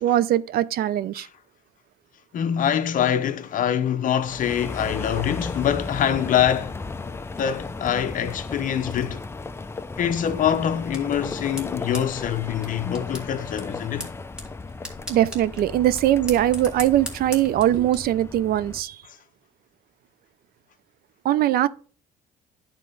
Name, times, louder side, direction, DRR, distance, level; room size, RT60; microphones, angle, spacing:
voice 1, 0.0-1.3 15.1-19.0 21.2-21.7, right 12 dB, 65° right, 0.5 m, -21 dB
voice 2, 2.3-6.8 7.4-9.2 10.0-14.1, left 9 dB, 55° left, 0.8 m, -24 dB
sound 1, 4.2-18.8, left 3 dB, 15° left, 0.5 m, -35 dB
sound 2, 10.2-18.0, left 1 dB, 5° right, 1.8 m, -40 dB
10.5 x 4.4 x 3.8 m
cardioid pair, 110°, 17 cm